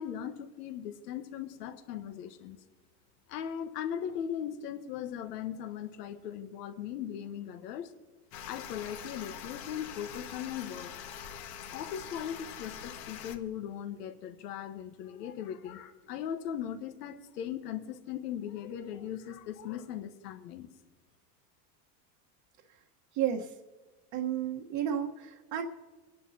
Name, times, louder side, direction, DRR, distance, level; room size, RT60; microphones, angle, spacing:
voice 1, 0.0-2.6 3.3-7.9 8.4-11.0 11.7-20.7, left 9 dB, 80° left, 9 dB, 1.4 m, -39 dB
sound 1, 8.3-13.4, left 8 dB, 65° left, 1.7 m, -44 dB
voice 2, 23.1-23.5 24.1-25.6, right 9 dB, 50° right, 0 dB, 1.4 m, -32 dB
26.5 x 11.0 x 2.9 m, 1.3 s
supercardioid pair, 105°, 47 cm